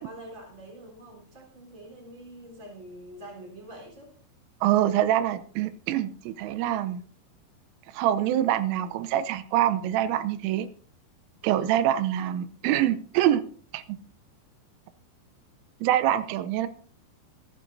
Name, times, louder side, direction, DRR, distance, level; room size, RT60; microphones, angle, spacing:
voice 1, 0.0-4.1, right 1 dB, 20° right, 0 dB, 3.7 m, -45 dB
voice 2, 4.6-7.0 7.9-10.7 11.4-13.4 13.7-14.0 15.8-16.7, right 12 dB, 90° right, 13 dB, 3.4 m, -25 dB
26.0 x 11.0 x 2.7 m, 0.43 s
omnidirectional pair, 5.6 m